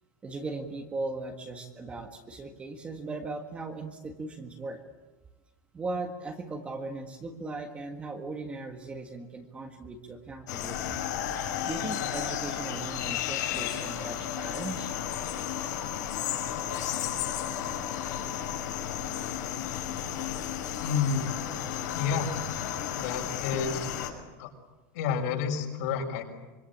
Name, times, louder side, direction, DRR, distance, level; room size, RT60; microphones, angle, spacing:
voice 1, 0.2-4.8 5.7-11.0 11.6-14.9 23.5-23.9, right 3 dB, 10° right, 4 dB, 1.7 m, -38 dB
sound 1, 10.5-24.1, left 10 dB, 75° left, 6.6 m, -33 dB
voice 2, 20.8-21.3 21.9-22.3 23.0-23.8 24.4-24.5 24.9-26.2, left 6 dB, 60° left, 2 dB, 6.5 m, -29 dB
25.5 x 24.0 x 8.7 m, 1.1 s
supercardioid pair, 175°, 10 cm